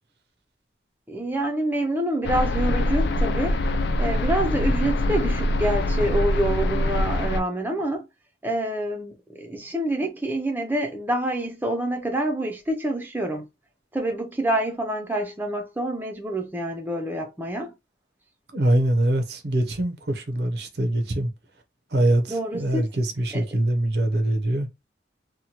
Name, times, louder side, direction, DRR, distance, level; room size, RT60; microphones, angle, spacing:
voice 1, 1.1-3.6 4.0-8.1 8.4-13.5 13.9-17.7 22.3-22.9 23.3-23.4, right 1 dB, 10° right, 0.4 m, -27 dB
sound 1, 2.2-7.4, left 1 dB, 65° left, 0.4 m, -23 dB
voice 2, 18.5-21.3 21.9-24.7, right 1 dB, 60° right, 0.6 m, -23 dB
2.8 x 2.1 x 2.8 m
head